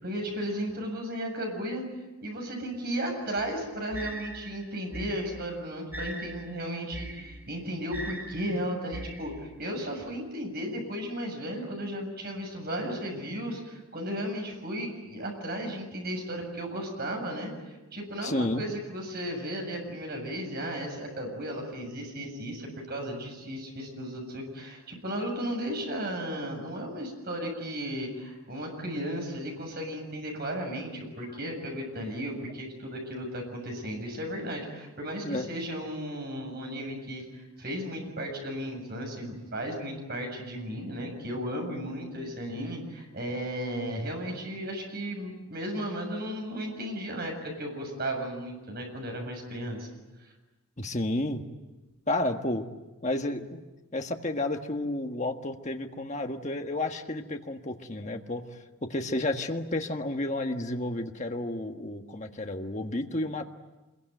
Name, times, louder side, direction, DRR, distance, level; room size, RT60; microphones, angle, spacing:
voice 1, 0.0-1.8 2.2-49.9, equal, 45° right, 2 dB, 7.3 m, -35 dB
sound 1, 3.4-9.7, right 1 dB, 10° right, 1.8 m, -41 dB
voice 2, 18.2-18.6 35.2-35.5 50.8-51.4 52.1-52.7 53.0-53.6 53.9-63.4, left 1 dB, 30° left, 4 dB, 1.6 m, -31 dB
26.5 x 22.5 x 9.2 m, 1.1 s
head